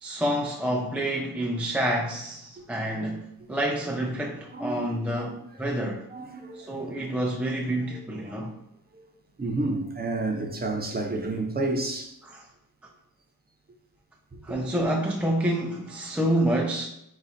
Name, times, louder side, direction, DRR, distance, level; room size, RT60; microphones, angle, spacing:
voice 1, 0.0-6.0 6.5-8.5 12.2-12.5 14.4-16.9, right 1 dB, 5° right, 0.3 m, -28 dB
voice 2, 4.5-5.2 6.1-6.7 8.9-9.0 9.4-12.1 14.3-14.4, right 2 dB, 25° right, 0.7 m, -30 dB
5.0 x 2.4 x 4.1 m
wide cardioid pair, 155°, 38 cm